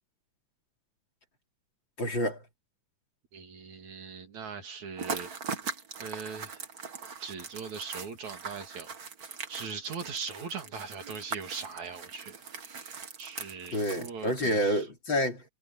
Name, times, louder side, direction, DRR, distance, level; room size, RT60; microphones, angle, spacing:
voice 1, 2.0-2.4 13.7-15.4, equal, 35° left, 4.2 m, -28 dB
voice 2, 3.3-5.3 6.0-6.6 7.2-8.9 9.5-14.9, right 5 dB, 60° right, 3.8 m, -40 dB
sound 1, 5.0-14.7, right 5 dB, 35° right, 1.6 m, -41 dB
omnidirectional pair, 3.7 m